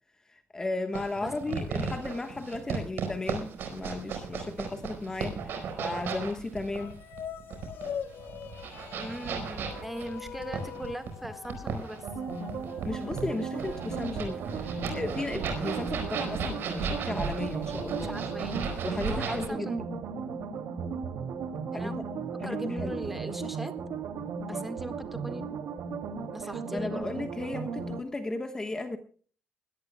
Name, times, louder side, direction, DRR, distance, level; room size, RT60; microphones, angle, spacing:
voice 1, 0.3-7.0 12.8-18.2 18.8-19.8 21.7-21.9 22.4-23.1 24.5-24.7 26.7-29.0, left 2 dB, 15° left, 6 dB, 1.2 m, -35 dB
sound 1, 0.9-19.5, right 5 dB, 65° right, 4.7 m, -35 dB
sound 2, 6.7-15.2, left 8 dB, 60° left, 1.0 m, -43 dB
voice 2, 8.9-12.1 18.0-18.8 19.1-19.8 21.7-21.9 22.4-23.8 24.4-25.6 26.3-27.1, right 1 dB, 5° right, 7 dB, 1.6 m, -39 dB
sound 3, 12.0-28.0, right 5 dB, 90° right, 2.5 m, -36 dB
22.5 x 17.0 x 2.2 m, 0.42 s
cardioid pair, 180°, 4 cm